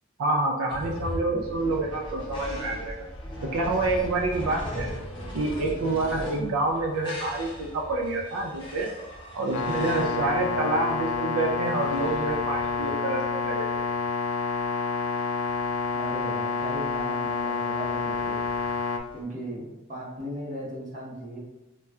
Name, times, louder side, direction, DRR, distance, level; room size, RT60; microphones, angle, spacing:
voice 1, 0.2-3.0 3.5-4.9 5.3-8.9 9.3-13.7, right 2 dB, 85° right, 0 dB, 0.4 m, -27 dB
sound 1, 0.7-19.2, equal, 25° left, 0.7 m, -40 dB
sound 2, 9.5-19.0, left 5 dB, 80° left, 0.3 m, -28 dB
voice 2, 15.9-18.4 19.1-21.4, equal, 40° right, -6 dB, 1.0 m, -37 dB
4.1 x 2.2 x 2.3 m, 1.0 s
head